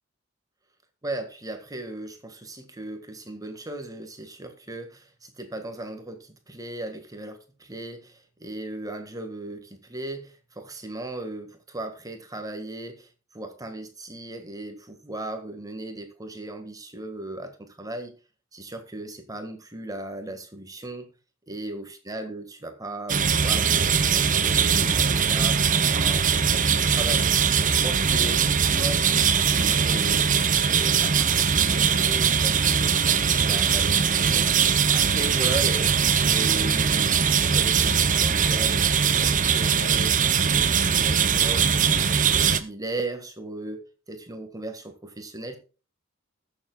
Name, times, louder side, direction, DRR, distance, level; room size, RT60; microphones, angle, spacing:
voice 1, 1.0-18.2 18.5-21.1 21.5-24.9 25.2-30.3 30.7-34.5 34.9-41.6 42.2-45.6, right 2 dB, 20° right, 7 dB, 1.6 m, -37 dB
sound 1, 23.1-42.6, right 7 dB, 40° right, 0.8 m, -21 dB
20.0 x 7.0 x 2.3 m, 0.34 s
head